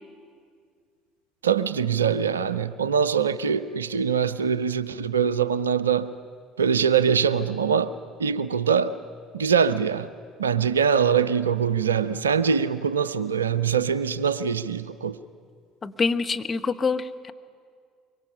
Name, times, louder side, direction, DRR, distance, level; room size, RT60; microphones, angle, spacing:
voice 1, 1.4-6.1 6.6-7.9 8.2-9.0 9.3-10.1 10.4-15.2, right 7 dB, 80° right, 16 dB, 0.4 m, -23 dB
voice 2, 15.8-17.3, left 4 dB, 30° left, 8 dB, 1.0 m, -26 dB
23.5 x 23.5 x 5.7 m, 2.1 s
figure-of-eight pair, 60°, 0 cm